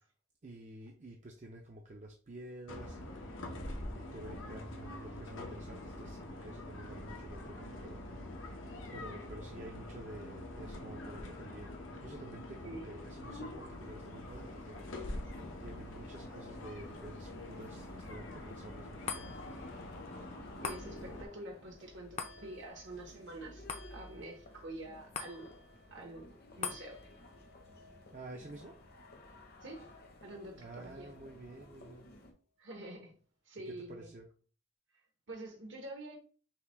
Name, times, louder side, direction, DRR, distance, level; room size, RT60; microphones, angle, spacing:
voice 1, 0.4-3.5 3.9-8.0 8.9-14.8 15.6-19.6 28.1-28.7 30.6-32.1 33.7-34.3, right 2 dB, 40° right, 0.5 m, -50 dB
sound 1, 2.7-21.3, left 1 dB, 80° left, 0.8 m, -45 dB
sound 2, 13.8-32.3, left 2 dB, 50° left, 0.9 m, -56 dB
sound 3, 19.1-31.6 32.1-32.2, left 5 dB, 35° left, 0.5 m, -48 dB
voice 2, 20.6-23.6 23.9-25.5 25.9-27.0 29.6-29.9 30.2-31.1 32.6-33.2 33.4-34.1 35.3-36.2, right 1 dB, 70° right, 1.0 m, -47 dB
5.6 x 2.2 x 3.3 m
head